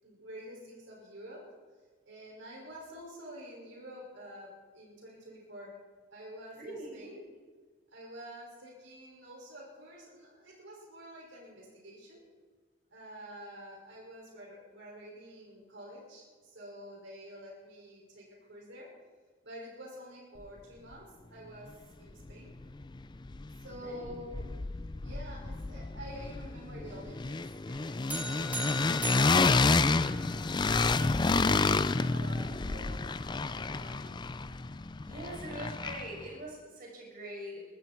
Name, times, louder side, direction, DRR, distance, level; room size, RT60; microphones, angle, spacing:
voice 1, 0.0-1.5 2.0-5.8 6.1-7.4 7.9-12.2 12.9-18.9 19.4-21.7 22.0-22.5 23.6-24.6 25.0-30.3 30.9-34.1, equal, 65° right, -2 dB, 6.1 m, -48 dB
voice 2, 6.5-7.1 23.7-24.1 35.0-37.6, right 1 dB, 45° right, -2 dB, 6.0 m, -43 dB
sound 1, 22.3-22.4 22.6-23.8 24.0-36.2, left 3 dB, 20° left, 0.4 m, -30 dB
sound 2, 28.1-30.6, right 1 dB, 10° right, 1.9 m, -39 dB
22.0 x 14.5 x 4.6 m, 1.5 s
head